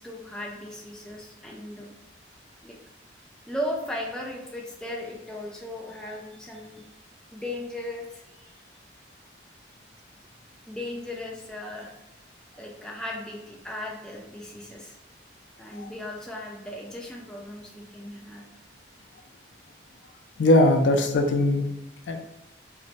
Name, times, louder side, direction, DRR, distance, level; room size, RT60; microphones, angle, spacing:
voice 1, 0.0-2.0 2.6-2.8 3.5-6.9 7.3-8.6 10.7-11.9 12.5-15.0 15.6-18.4, left 1 dB, 5° left, -2 dB, 0.4 m, -37 dB
voice 2, 20.4-21.6 22.1-22.3, left 1 dB, 85° left, 5 dB, 0.4 m, -20 dB
2.5 x 2.1 x 4.0 m, 0.96 s
head